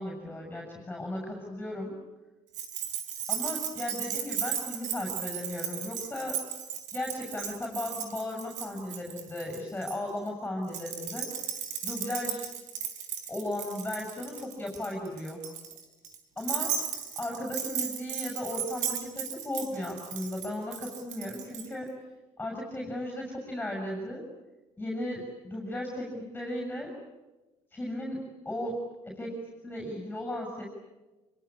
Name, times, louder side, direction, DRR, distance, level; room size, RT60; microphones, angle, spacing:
voice 1, 0.0-2.0 3.3-6.4 6.9-11.3 11.8-12.5 13.3-15.5 16.4-16.8 17.2-21.9 22.4-24.2 24.8-26.9 27.7-30.7, left 1 dB, 10° left, 1 dB, 7.3 m, -36 dB
Keys jangling, 2.5-10.0 10.7-21.7, right 8 dB, 70° right, 4.8 m, -36 dB
27.0 x 24.5 x 8.8 m, 1.1 s
cardioid pair, 125°, 13 cm